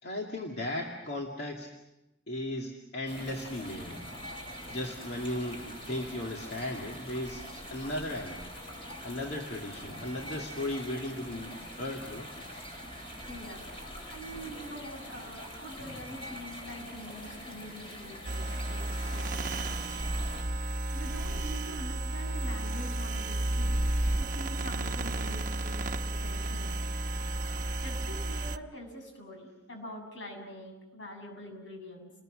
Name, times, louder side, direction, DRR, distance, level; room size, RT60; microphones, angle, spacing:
voice 1, 0.0-1.7 2.3-4.0 4.7-8.5 9.0-12.3, left 1 dB, 60° left, 0 dB, 2.3 m, -36 dB
sound 1, 3.1-20.4, equal, 30° left, 4.5 m, -44 dB
voice 2, 13.3-20.2 20.9-23.8 24.2-26.9 27.8-32.1, equal, 80° left, 2 dB, 7.7 m, -45 dB
sound 2, 18.2-28.6, right 1 dB, 45° right, 1.0 m, -32 dB
30.0 x 21.0 x 6.4 m, 0.95 s
head